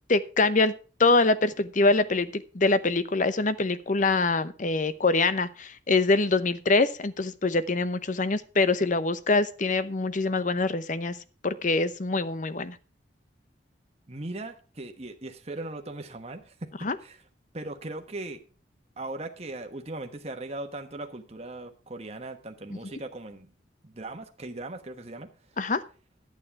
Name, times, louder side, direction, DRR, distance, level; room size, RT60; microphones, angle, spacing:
voice 1, 0.1-0.7 1.0-11.2 11.4-12.8 16.8-17.0 25.6-25.8, left 3 dB, 45° left, 14 dB, 0.8 m, -24 dB
voice 2, 14.1-16.7 17.0-17.2 17.5-18.4 19.0-23.5 23.8-25.3, right 2 dB, 35° right, 5 dB, 1.3 m, -38 dB
11.5 x 8.9 x 4.7 m, 0.36 s
head